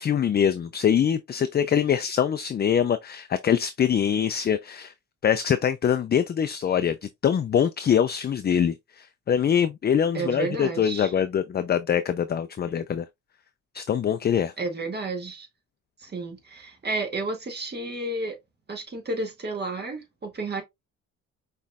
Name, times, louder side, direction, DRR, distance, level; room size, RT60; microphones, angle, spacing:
voice 1, 0.0-4.9 5.2-7.0 7.2-13.0 13.7-14.5, left 8 dB, 35° left, 0.4 m, -24 dB
voice 2, 10.1-11.1 14.6-15.5 16.0-18.4 18.7-20.6, right 3 dB, 35° right, 1.9 m, -31 dB
5.6 x 3.2 x 2.3 m
cardioid pair, 90°, 30 cm